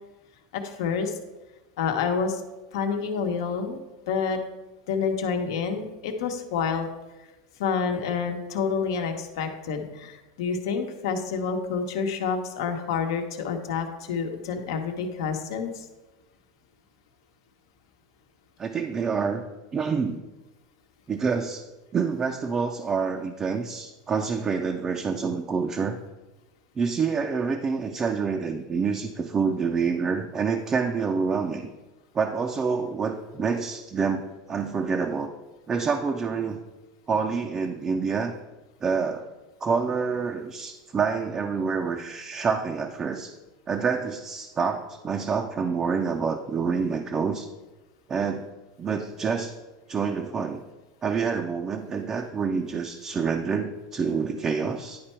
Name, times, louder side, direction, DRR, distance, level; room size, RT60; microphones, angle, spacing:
voice 1, 0.5-1.2 1.8-2.4 2.7-3.8 4.1-4.4 4.9-6.9 7.6-15.9, left 6 dB, 75° left, 5 dB, 1.0 m, -28 dB
voice 2, 18.6-19.4 19.7-20.2 21.1-21.7 21.9-26.0 26.8-31.7 32.1-35.3 35.7-36.6 37.1-38.4 38.8-39.3 39.6-43.3 43.7-47.5 48.1-48.5 48.8-49.5 49.9-50.6 51.0-55.0, right 5 dB, 20° right, 4 dB, 0.4 m, -27 dB
10.5 x 4.5 x 4.4 m, 1.1 s
supercardioid pair, 140°, 2 cm